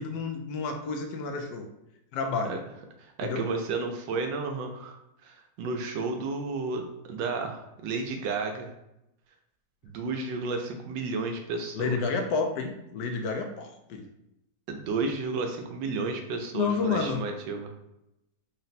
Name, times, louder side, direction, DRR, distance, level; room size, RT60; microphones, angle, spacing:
voice 1, 0.0-1.7 2.1-2.6 3.2-3.4 11.7-14.1 16.5-17.2, left 4 dB, 75° left, 4 dB, 1.2 m, -30 dB
voice 2, 3.2-5.0 5.2-8.7 9.8-12.0 14.7-17.7, right 3 dB, 85° right, 3 dB, 1.3 m, -32 dB
4.0 x 2.1 x 4.0 m, 0.86 s
omnidirectional pair, 2.0 m